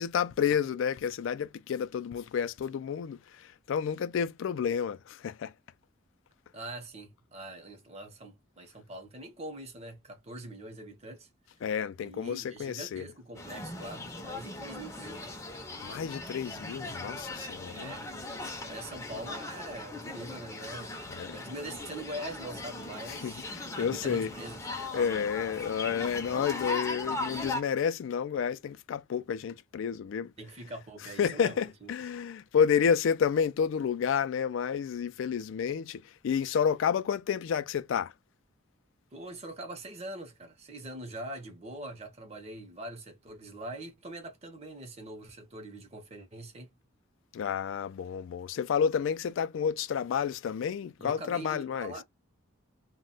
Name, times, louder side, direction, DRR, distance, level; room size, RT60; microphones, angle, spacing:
voice 1, 0.0-5.5 11.6-13.0 15.8-17.9 21.1-21.4 23.1-24.3 24.9-30.3 31.2-38.1 47.3-51.9, left 7 dB, 70° left, 0.3 m, -30 dB
voice 2, 6.5-11.3 12.0-15.4 17.6-18.1 18.6-20.9 21.3-23.5 23.7-25.1 30.4-31.9 39.1-46.7 51.0-52.0, right 1 dB, 30° right, 0.6 m, -43 dB
sound 1, 13.3-27.6, left 2 dB, 15° left, 0.5 m, -39 dB
2.1 x 2.1 x 3.8 m
head